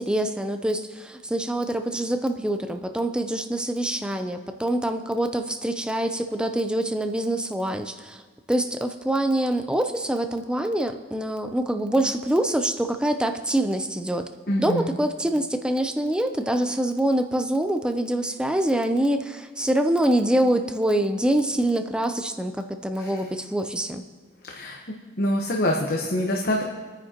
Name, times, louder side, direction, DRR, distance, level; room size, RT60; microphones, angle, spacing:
voice 1, 0.0-8.2 8.5-14.3 14.6-24.0, right 1 dB, 5° right, 7 dB, 0.5 m, -25 dB
voice 2, 14.5-14.9 23.0-23.2 24.4-24.8 25.2-26.6, left 1 dB, 60° left, 0 dB, 1.1 m, -25 dB
23.0 x 9.6 x 2.9 m, 1.4 s
head